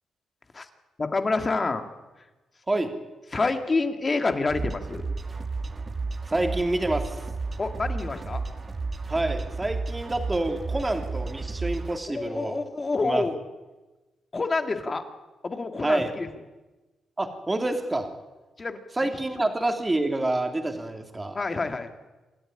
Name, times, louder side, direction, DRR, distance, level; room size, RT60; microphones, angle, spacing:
voice 1, 1.0-1.9 3.3-5.1 7.6-8.4 12.1-13.4 14.3-15.0 15.4-16.3 18.6-19.1 19.3-19.5 21.3-21.9, left 3 dB, 30° left, 7 dB, 2.1 m, -28 dB
sound 1, 4.5-12.0, right 3 dB, 30° right, 1.8 m, -32 dB
voice 2, 6.3-7.2 9.1-12.6 13.0-13.2 15.8-16.1 17.2-18.1 19.0-21.4, right 2 dB, 15° right, 5 dB, 2.9 m, -27 dB
27.0 x 12.5 x 10.0 m, 1.2 s
cardioid pair, 115°, 0 cm